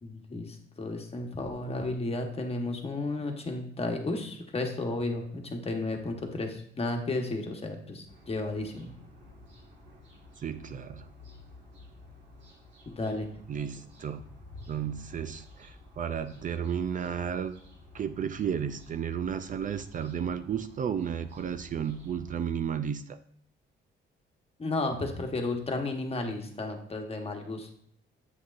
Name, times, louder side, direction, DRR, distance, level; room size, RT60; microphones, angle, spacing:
voice 1, 0.0-8.9 12.9-13.3 24.6-27.7, left 2 dB, 30° left, 3 dB, 1.2 m, -33 dB
sound 1, 8.1-22.4, left 2 dB, 65° right, 1.8 m, -52 dB
voice 2, 10.4-11.1 13.5-14.2 14.7-17.6 17.9-23.2, right 8 dB, 40° right, 10 dB, 0.4 m, -33 dB
7.7 x 6.0 x 2.6 m, 0.66 s
cardioid pair, 90°, 20 cm